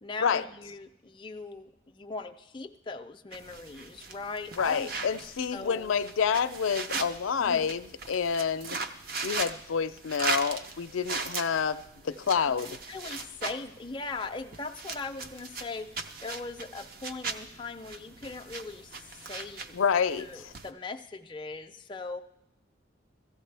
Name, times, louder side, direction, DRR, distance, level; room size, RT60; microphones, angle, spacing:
voice 1, 0.0-5.9 7.4-7.7 12.7-19.8 20.2-22.2, left 3 dB, 25° left, 5 dB, 0.4 m, -40 dB
sound 1, 3.3-20.7, right 4 dB, 50° right, 0.6 m, -39 dB
voice 2, 4.6-8.8 9.2-11.8 12.0-12.8 19.7-20.3, left 6 dB, 85° left, 10 dB, 0.5 m, -28 dB
16.5 x 14.5 x 3.3 m, 0.81 s
head